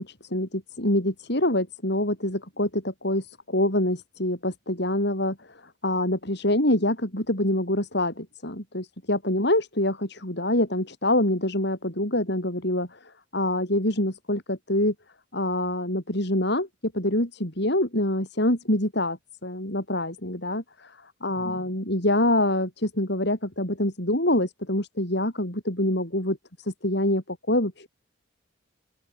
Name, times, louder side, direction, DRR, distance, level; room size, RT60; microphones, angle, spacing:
voice 1, 0.0-14.9 15.3-16.7 16.9-20.9 21.2-26.4 26.6-27.9, left 1 dB, 55° left, 7.0 m, -25 dB
open air
head